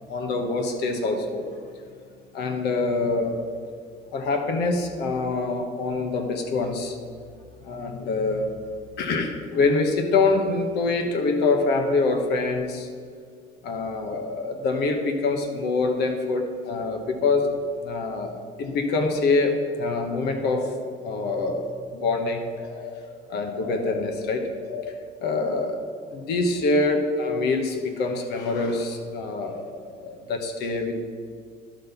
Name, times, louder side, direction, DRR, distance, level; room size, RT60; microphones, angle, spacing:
voice 1, 0.1-1.4 2.3-3.4 4.1-7.0 7.6-8.5 9.0-12.9 13.6-20.7 21.0-23.0 23.3-24.9 25.2-25.8 26.1-30.9, left 3 dB, 80° left, 4 dB, 1.2 m, -25 dB
11.0 x 3.9 x 6.9 m, 2.1 s
cardioid pair, 110°, 17 cm